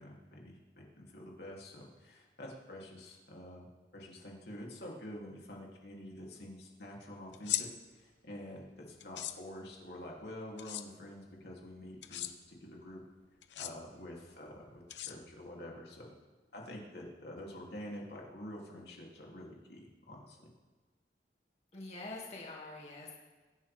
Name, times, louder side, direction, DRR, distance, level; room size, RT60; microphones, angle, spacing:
voice 1, 0.0-3.7 3.9-7.7 7.9-13.0 13.5-16.1 16.5-20.4, left 1 dB, 70° left, -2 dB, 2.9 m, -47 dB
sound 1, 7.3-7.6 9.0-9.3 10.6-10.8 12.0-12.3 13.4-13.7 14.9-15.5, left 12 dB, 85° left, 0.8 m, -37 dB
voice 2, 21.7-23.1, left 2 dB, 35° left, -3 dB, 2.2 m, -45 dB
23.5 x 11.0 x 3.5 m, 1.3 s
head